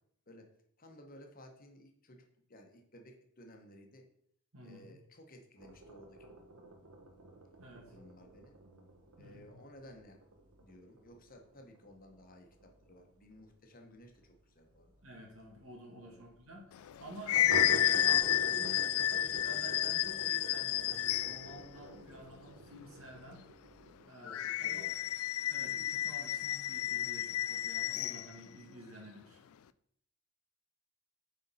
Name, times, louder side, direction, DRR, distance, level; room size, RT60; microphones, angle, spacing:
voice 1, 0.8-2.2 2.5-4.1 4.6-6.4 7.8-8.6 9.2-10.2 10.6-14.9 16.0-16.2 24.2-25.1, left 1 dB, 40° left, 3 dB, 1.1 m, -56 dB
voice 2, 4.5-4.9 7.6-7.9 9.2-9.5 15.0-23.4 24.0-24.8 25.4-29.4, right 1 dB, 70° right, 1 dB, 1.9 m, -51 dB
sound 1, 5.6-14.8 15.1-15.2 15.5-15.6 16.0-16.1 17.3-24.0, right 1 dB, 85° right, 1.1 m, -47 dB
sound 2, 16.8-21.5 24.3-28.3, left 12 dB, 75° left, 0.3 m, -31 dB
8.1 x 4.3 x 4.1 m, 0.69 s
head